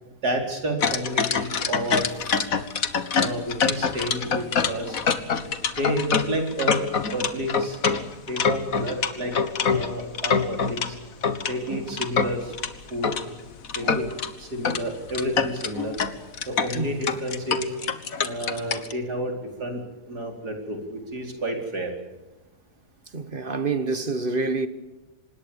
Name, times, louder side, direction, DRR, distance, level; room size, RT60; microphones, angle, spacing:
voice 1, 0.2-2.0 3.2-5.0 5.8-6.8 7.1-7.8 8.3-9.3 9.6-11.0 11.5-12.4 12.9-13.1 13.8-14.0 14.4-15.9 16.5-17.7 18.2-19.8 20.1-21.9, right 1 dB, 75° right, 5.0 m, -30 dB
sound 1, 0.8-10.9 11.2-13.2 13.6-14.3 14.6-14.8 15.1-18.9, left 6 dB, 60° left, 1.9 m, -25 dB
voice 2, 23.1-24.7, right 3 dB, 35° right, 1.5 m, -27 dB
26.0 x 20.5 x 7.1 m
omnidirectional pair, 1.7 m